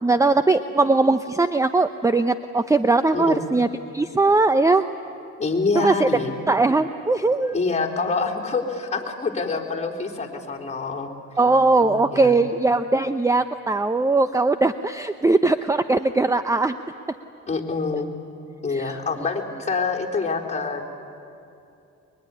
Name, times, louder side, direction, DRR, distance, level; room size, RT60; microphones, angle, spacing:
voice 1, 0.0-3.7 3.9-4.9 5.7-6.1 6.5-7.6 11.4-16.8 18.7-19.0, right 3 dB, 10° right, 11 dB, 0.7 m, -20 dB
voice 2, 5.4-6.3 7.5-11.1 11.8-12.3 17.5-18.1 18.6-20.9, left 4 dB, 25° left, -1 dB, 4.1 m, -26 dB
23.5 x 22.5 x 10.0 m, 2.7 s
cardioid pair, 90°, 30 cm